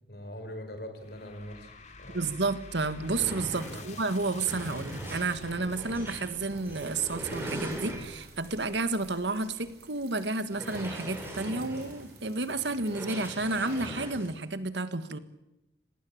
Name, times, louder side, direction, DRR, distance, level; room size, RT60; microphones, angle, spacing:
voice 1, 0.1-1.7 2.0-2.2 3.7-3.9, left 1 dB, 60° left, 8 dB, 4.9 m, -42 dB
sound 1, 1.0-12.3, left 2 dB, 40° left, 3.2 m, -50 dB
voice 2, 2.1-15.2, right 3 dB, 85° right, 12 dB, 1.7 m, -31 dB
sound 2, 2.3-2.4 2.7-8.4 8.9-9.0 9.4-9.5 10.5-14.3, right 1 dB, 15° right, 7.2 m, -41 dB
sound 3, 6.4-13.8, right 8 dB, 60° right, 5.7 m, -57 dB
26.0 x 19.0 x 8.7 m, 0.92 s
head